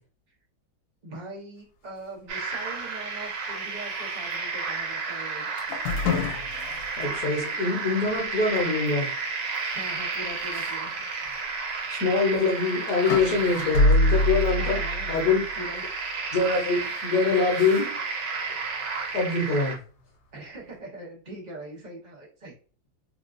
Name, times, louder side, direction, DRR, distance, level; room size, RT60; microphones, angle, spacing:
voice 1, 1.0-5.6 9.7-11.0 14.5-15.8 20.3-22.5, right 1 dB, 90° right, -3 dB, 0.4 m, -41 dB
sound 1, 2.3-19.8, right 4 dB, 70° right, 1.4 m, -32 dB
sound 2, 5.6-7.1 7.5-7.6 8.1-8.2 9.8-9.9 10.5-10.7 11.2-11.3 12.4-15.6 16.4-17.0 17.5-17.9, left 1 dB, 80° left, 1.3 m, -26 dB
voice 2, 7.0-9.1 11.9-14.8 15.1-15.4 16.3-17.9 19.1-19.8, left 4 dB, 55° left, -1 dB, 1.1 m, -24 dB
3.6 x 2.3 x 2.5 m, 0.38 s
omnidirectional pair, 2.2 m